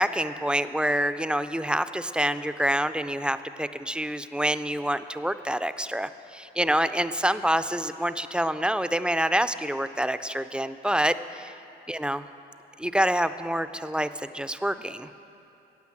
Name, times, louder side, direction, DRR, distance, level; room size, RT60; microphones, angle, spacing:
voice 1, 0.0-11.5 11.9-12.2 12.8-15.1, equal, 5° right, 12 dB, 0.3 m, -27 dB
9.5 x 8.8 x 7.5 m, 2.8 s
cardioid pair, 90°, 20 cm